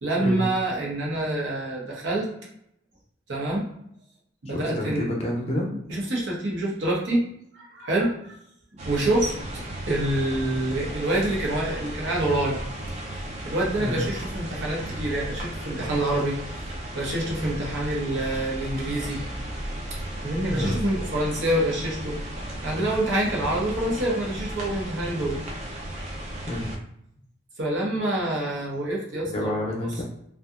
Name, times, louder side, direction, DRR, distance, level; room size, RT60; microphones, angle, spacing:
voice 1, 0.0-2.3 3.3-3.7 4.4-5.1 5.9-7.2 7.5-8.3 8.8-12.6 13.1-16.4 16.9-19.2 20.2-22.2 22.6-25.4 27.6-29.5 29.8-29.9, right 1 dB, 85° right, -3 dB, 0.8 m, -26 dB
voice 2, 4.5-5.7 13.8-14.0 20.5-20.8 26.5-26.7 29.2-30.0, left 1 dB, 35° left, -1 dB, 0.5 m, -28 dB
sound 1, 8.8-26.8, right 1 dB, 35° right, 0.4 m, -34 dB
2.7 x 2.3 x 2.4 m, 0.73 s
head